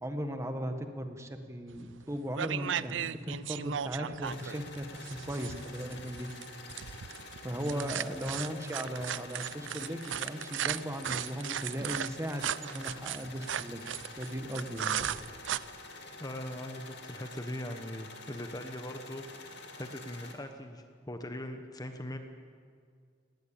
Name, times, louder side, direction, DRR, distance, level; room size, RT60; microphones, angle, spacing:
voice 1, 0.0-6.3 6.7-6.8 7.4-13.8 14.2-15.0, equal, 15° right, 6 dB, 1.6 m, -37 dB
sound 1, 1.8-2.0 2.3-15.6, right 9 dB, 75° right, 0.5 m, -36 dB
sound 2, 4.2-20.3, left 3 dB, 65° left, 2.6 m, -48 dB
sound 3, 11.7-13.4 13.9-16.2, right 1 dB, 55° right, 2.5 m, -50 dB
voice 2, 16.2-19.2 19.8-22.2, left 1 dB, 20° left, 6 dB, 1.1 m, -40 dB
19.0 x 18.5 x 9.0 m, 2.1 s
head